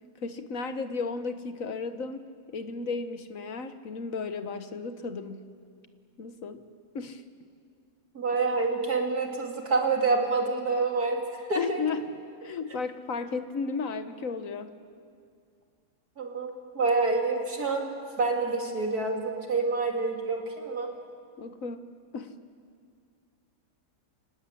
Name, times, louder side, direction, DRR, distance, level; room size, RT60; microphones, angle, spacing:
voice 1, 0.2-5.5 6.2-6.6 6.9-7.2 11.5-12.1 12.4-14.7 21.4-21.8 22.1-22.3, left 4 dB, 50° left, 9 dB, 1.4 m, -34 dB
voice 2, 8.1-11.8 16.2-16.5 16.7-17.9 18.2-20.9, right 3 dB, 50° right, 1 dB, 3.2 m, -27 dB
28.5 x 16.5 x 9.9 m, 2.2 s
omnidirectional pair, 2.0 m